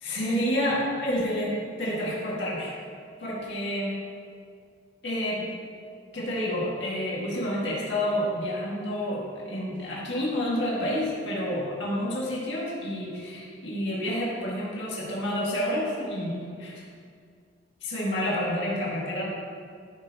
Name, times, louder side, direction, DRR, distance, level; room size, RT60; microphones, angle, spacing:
voice 1, 0.0-2.7 3.2-4.0 5.0-5.5 6.1-16.8 17.8-19.2, equal, 75° left, -6 dB, 2.1 m, -29 dB
15.0 x 5.7 x 3.0 m, 2.2 s
head